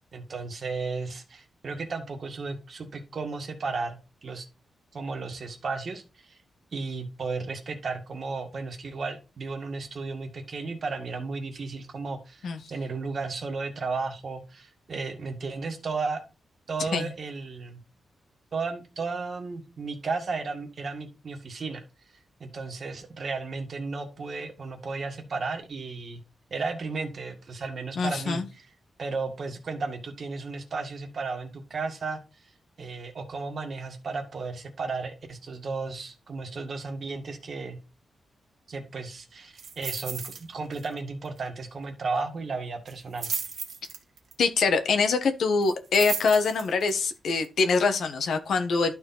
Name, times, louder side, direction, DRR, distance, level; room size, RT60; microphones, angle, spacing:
voice 1, 0.1-4.5 4.9-6.4 6.7-16.2 16.7-17.8 18.5-21.8 22.4-26.2 26.5-28.7 29.0-32.4 32.8-37.8 38.7-43.3, right 4 dB, 50° right, 1.8 m, -34 dB
voice 2, 28.0-28.4 44.4-48.9, left 4 dB, 75° left, 1.2 m, -24 dB
sound 1, 39.6-40.4 40.7-41.0 41.2-41.3 42.9-44.3 45.6-46.9 47.4-47.5, right 5 dB, 65° right, 1.8 m, -35 dB
11.5 x 4.4 x 4.0 m
wide cardioid pair, 115°, 0 cm